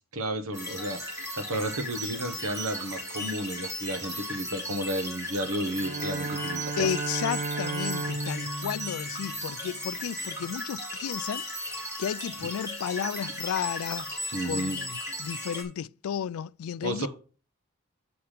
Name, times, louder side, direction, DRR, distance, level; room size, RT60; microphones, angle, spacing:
voice 1, 0.1-6.9 14.3-14.8 16.8-17.1, right 1 dB, 75° right, 1.2 m, -32 dB
sound 1, 0.5-15.6, left 1 dB, 15° right, 2.6 m, -36 dB
Bowed string instrument, 5.7-9.8, right 3 dB, 35° right, 0.6 m, -34 dB
voice 2, 6.8-11.7 12.0-14.1 14.4-17.1, left 8 dB, 75° left, 0.3 m, -33 dB
6.8 x 5.8 x 5.0 m
head